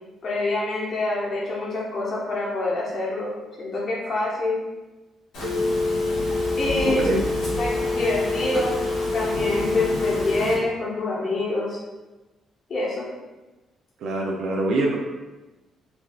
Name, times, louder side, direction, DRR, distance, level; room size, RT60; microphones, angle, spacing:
voice 1, 0.2-3.3 3.6-4.6 6.6-7.1 7.6-8.7 9.1-11.8 12.7-13.1, left 2 dB, 50° left, -5 dB, 0.9 m, -26 dB
Telephone, 5.3-10.5, left 2 dB, 85° left, 1.0 m, -25 dB
voice 2, 6.8-7.2 14.0-15.0, right 2 dB, 75° right, -1 dB, 0.3 m, -24 dB
3.3 x 2.3 x 2.2 m, 1.1 s
cardioid pair, 90°, 0 cm